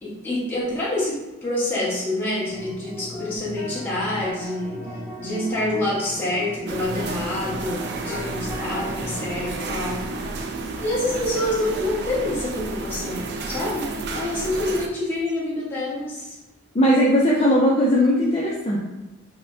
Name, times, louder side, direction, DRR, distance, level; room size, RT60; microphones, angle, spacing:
voice 1, 0.0-4.8 5.2-10.0 10.8-16.4 18.0-18.1, left 1 dB, 10° left, -9 dB, 1.1 m, -27 dB
sound 1, 2.5-10.0, equal, 10° right, 1.2 m, -36 dB
sound 2, 6.7-14.9, right 3 dB, 55° right, 0.4 m, -31 dB
voice 2, 16.7-18.8, equal, 30° left, -5 dB, 0.4 m, -18 dB
5.5 x 2.2 x 2.6 m, 1.1 s
head